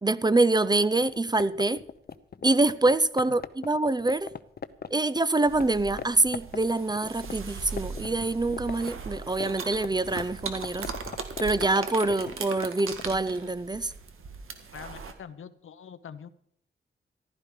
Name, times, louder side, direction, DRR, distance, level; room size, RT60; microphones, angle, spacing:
voice 1, 0.0-1.8 2.4-4.3 4.9-10.9 11.4-13.9, right 2 dB, 20° right, 0.6 m, -25 dB
sound 1, 1.0-5.7 6.0-6.1 6.3-8.1 8.3-13.1, left 6 dB, 50° left, 0.8 m, -39 dB
sound 2, 5.4-15.1, right 5 dB, 85° right, 1.7 m, -39 dB
voice 2, 14.7-16.3, left 7 dB, 75° left, 0.9 m, -44 dB
15.0 x 12.0 x 5.0 m
cardioid pair, 80°, 21 cm